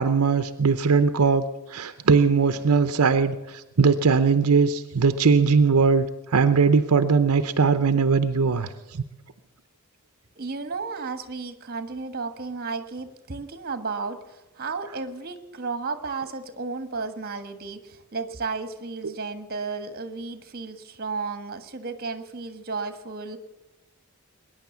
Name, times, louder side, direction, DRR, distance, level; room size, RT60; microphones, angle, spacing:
voice 1, 0.0-6.1 6.3-8.7, right 5 dB, 80° right, 10 dB, 0.7 m, -20 dB
voice 2, 10.3-23.4, right 4 dB, 45° right, 10 dB, 1.4 m, -33 dB
21.0 x 9.9 x 7.0 m, 1.0 s
head